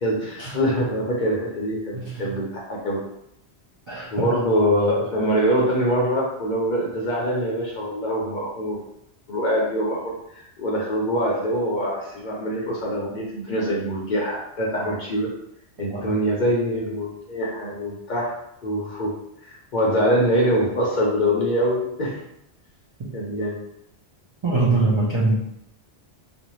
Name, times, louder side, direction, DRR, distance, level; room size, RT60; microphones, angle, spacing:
voice 1, 0.0-3.0 4.1-8.8 9.3-15.3 15.8-19.1 19.4-22.2 23.1-23.6, equal, 55° left, -3 dB, 0.5 m, -24 dB
voice 2, 1.9-2.3 3.9-4.3 15.9-16.1 24.4-25.5, right 3 dB, 50° right, -6 dB, 0.3 m, -23 dB
2.5 x 2.0 x 2.9 m, 0.78 s
omnidirectional pair, 1.2 m